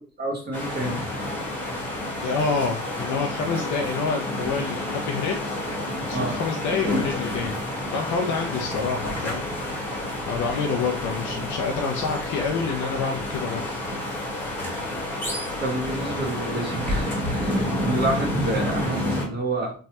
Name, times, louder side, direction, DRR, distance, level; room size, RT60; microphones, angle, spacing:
voice 1, 0.2-1.0 6.1-6.3 15.6-19.7, right 2 dB, 35° right, -1 dB, 1.2 m, -29 dB
sound 1, 0.5-19.3, left 1 dB, 5° left, 1.3 m, -29 dB
voice 2, 2.0-5.7 6.0-7.6 7.9-9.5 10.3-13.6, left 5 dB, 80° left, 2 dB, 0.5 m, -28 dB
3.2 x 2.2 x 2.8 m, 0.40 s
cardioid pair, 90°, 30 cm